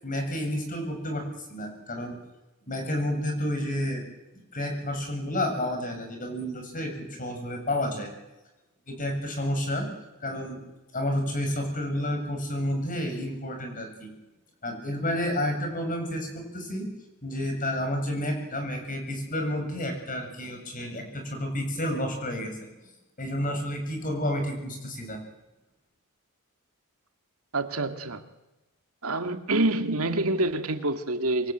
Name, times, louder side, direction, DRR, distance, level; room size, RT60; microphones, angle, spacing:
voice 1, 0.0-2.2 2.7-4.1 4.5-8.1 8.9-9.9 10.2-10.6 10.9-14.1 14.6-16.9 17.2-22.5 23.2-25.2, left 1 dB, 40° left, 7.6 m, -30 dB
voice 2, 27.5-28.3 29.0-31.5, right 2 dB, 75° right, 2.1 m, -27 dB
27.0 x 22.5 x 9.2 m
head